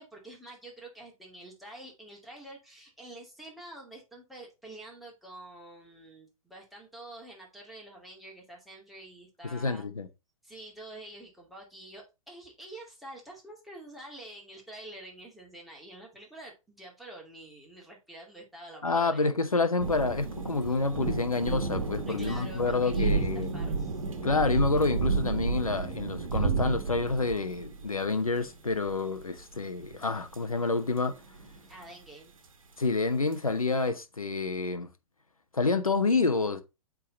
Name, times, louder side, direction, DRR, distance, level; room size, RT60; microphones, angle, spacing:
voice 1, 0.0-9.8 10.4-19.3 20.6-20.8 22.1-24.0 31.7-32.3, right 1 dB, ahead, 2.4 m, -47 dB
voice 2, 9.4-10.1 18.8-23.5 24.2-31.1 32.8-34.9 35.5-36.6, left 3 dB, 85° left, 0.9 m, -28 dB
sound 1, 19.8-30.4 30.8-31.9 33.3-33.4, right 4 dB, 70° right, 1.4 m, -32 dB
8.3 x 3.8 x 4.1 m
figure-of-eight pair, 110°, 18 cm